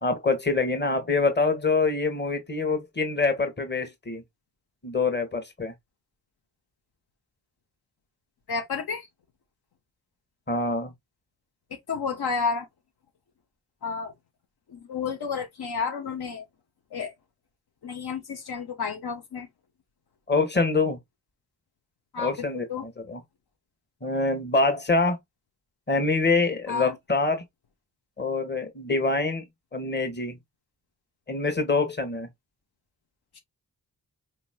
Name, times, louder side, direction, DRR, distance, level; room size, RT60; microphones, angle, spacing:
voice 1, 0.0-4.2 4.8-5.7 10.5-10.9 20.3-21.0 22.2-23.2 24.0-25.2 25.9-27.4 28.2-29.4 29.7-30.4 31.3-32.3, left 3 dB, 30° left, 1.3 m, -25 dB
voice 2, 8.5-9.1 11.9-12.7 13.8-14.1 14.7-16.4 16.9-17.1 17.8-19.5 22.1-22.8 26.7-27.0, left 5 dB, 80° left, 1.0 m, -31 dB
4.3 x 3.0 x 2.2 m
cardioid pair, 50°, 38 cm